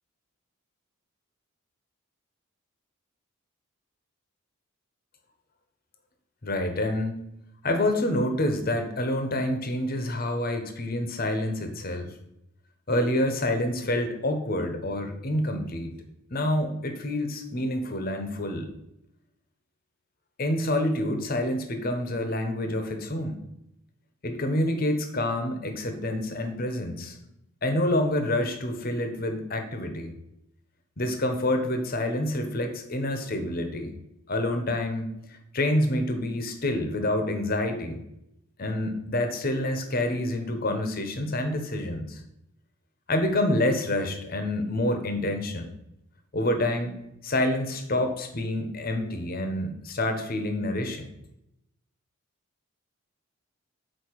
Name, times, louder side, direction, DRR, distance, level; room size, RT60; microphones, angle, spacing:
voice 1, 6.4-7.2 7.6-12.1 12.9-15.9 16.3-18.7 20.4-23.4 24.2-27.2 27.6-30.1 31.0-34.0 34.3-35.1 35.5-38.0 38.6-42.2 43.1-45.7 46.3-46.9 47.2-51.1, left 1 dB, 40° left, 6 dB, 0.9 m, -27 dB
6.6 x 4.5 x 4.6 m, 0.84 s
head